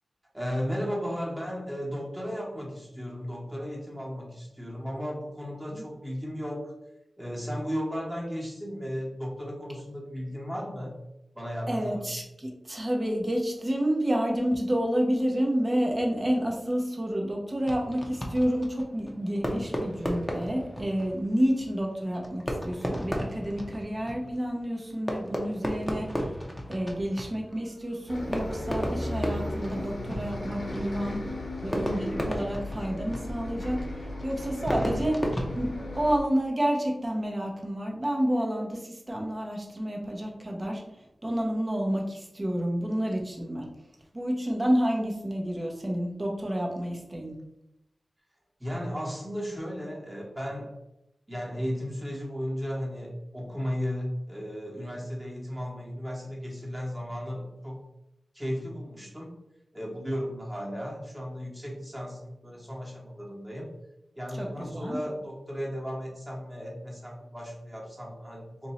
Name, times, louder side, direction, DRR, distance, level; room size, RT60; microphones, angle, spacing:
voice 1, 0.3-6.7 7.2-10.9 11.3-12.1 48.6-50.8 51.3-57.8 58.3-59.4 59.7-63.7 64.1-68.7, equal, 15° right, -3 dB, 1.3 m, -35 dB
voice 2, 11.7-26.3 26.7-31.2 31.6-43.7 44.1-47.4 64.4-65.0, equal, 30° right, 0 dB, 0.9 m, -29 dB
Fireworks, 17.6-36.4, equal, 10° left, 0.8 m, -35 dB
Bus, 28.1-36.2, left 1 dB, 75° left, 0.8 m, -36 dB
2.9 x 2.6 x 4.3 m, 0.87 s
wide cardioid pair, 65°, 0 cm